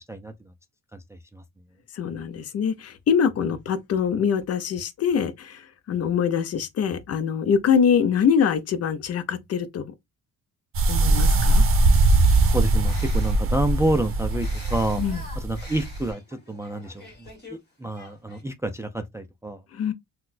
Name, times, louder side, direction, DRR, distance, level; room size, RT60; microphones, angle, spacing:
voice 1, 0.9-1.4 12.4-15.0 15.4-19.6, right 1 dB, 10° right, 0.3 m, -29 dB
voice 2, 1.9-9.9 10.9-11.6 15.0-15.2 19.7-19.9, left 7 dB, 50° left, 0.5 m, -24 dB
sound 1, 10.7-16.1, right 2 dB, 40° right, 0.7 m, -21 dB
sound 2, 12.3-13.6 14.3-17.6 17.8-18.4, left 1 dB, 30° left, 1.5 m, -46 dB
3.9 x 2.2 x 2.4 m
cardioid pair, 120°, 32 cm